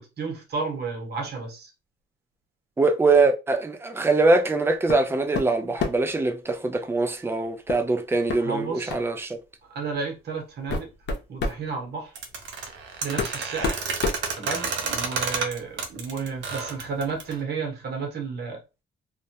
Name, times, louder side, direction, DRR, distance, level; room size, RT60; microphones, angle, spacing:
voice 1, 0.0-1.7 8.3-8.9 9.7-10.9 11.3-12.1 13.0-13.9 14.4-18.6, right 5 dB, 55° right, 0.9 m, -32 dB
voice 2, 2.8-9.4, right 3 dB, 10° right, 0.4 m, -23 dB
sound 1, 4.9-5.1 5.3-6.1 7.7-7.9 8.3-8.4 8.9-9.1 9.9-10.0 10.5-11.6 12.7-12.8 13.2-14.9, left 4 dB, 60° left, 0.6 m, -29 dB
sound 2, 12.2-17.4, right 5 dB, 70° right, 0.6 m, -30 dB
2.2 x 2.1 x 2.7 m
cardioid pair, 90°, 20 cm